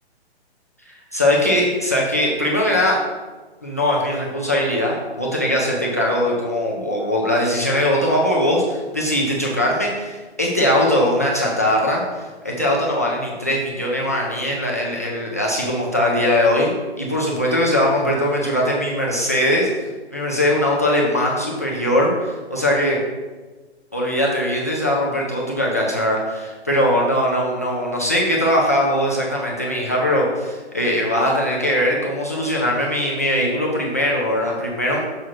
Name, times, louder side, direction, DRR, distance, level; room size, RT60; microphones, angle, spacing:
voice 1, 0.9-3.0 3.6-19.7 20.1-23.0 23.9-35.0, left 1 dB, 15° left, -4 dB, 0.3 m, -20 dB
6.2 x 3.6 x 5.8 m, 1.3 s
hypercardioid pair, 155°, 34 cm